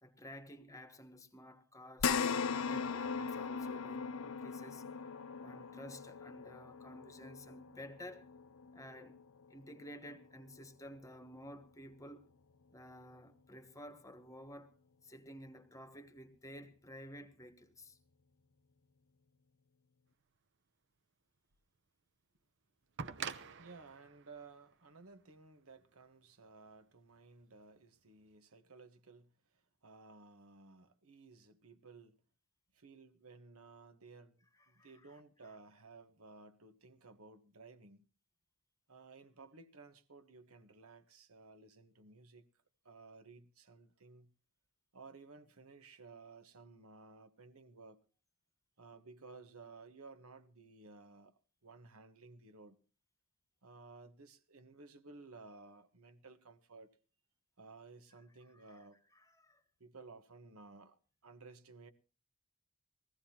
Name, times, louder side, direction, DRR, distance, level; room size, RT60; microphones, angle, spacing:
voice 1, 0.0-4.9 5.4-8.3 8.7-9.2 9.5-12.3 12.7-14.7 15.0-18.0 34.5-35.2 58.5-58.8 59.1-59.6, equal, 15° left, 1.2 m, -53 dB
sound 1, 2.0-10.6 11.1-11.2 12.6-12.7, left 6 dB, 85° left, 0.7 m, -39 dB
sound 2, 21.5-21.6 23.0-25.8 27.0-27.1, right 6 dB, 55° right, 0.8 m, -46 dB
voice 2, 23.6-32.2 32.7-38.1 38.9-42.5 42.8-44.3 44.9-48.0 48.8-52.8 53.6-56.9 57.6-59.0 59.8-61.9, right 3 dB, 80° right, 1.3 m, -56 dB
21.0 x 15.5 x 2.9 m
head